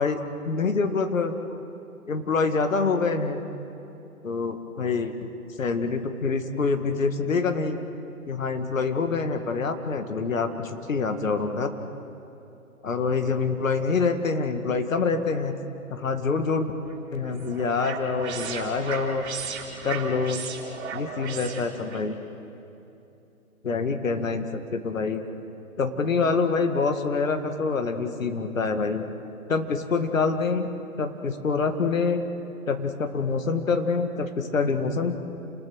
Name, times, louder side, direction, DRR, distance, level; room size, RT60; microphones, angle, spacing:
voice 1, 0.0-1.6 2.1-3.4 4.2-5.3 5.6-7.8 8.3-11.7 12.8-15.6 15.9-16.7 17.1-19.2 19.8-20.4 20.9-22.2 23.6-25.2 25.8-29.0 29.5-30.7 31.0-32.2 32.7-35.2, left 4 dB, 60° left, 7 dB, 2.0 m, -26 dB
sound 1, 16.9-22.1, right 5 dB, 50° right, 4.0 m, -36 dB
29.0 x 20.0 x 6.5 m, 2.8 s
figure-of-eight pair, 130°, 44 cm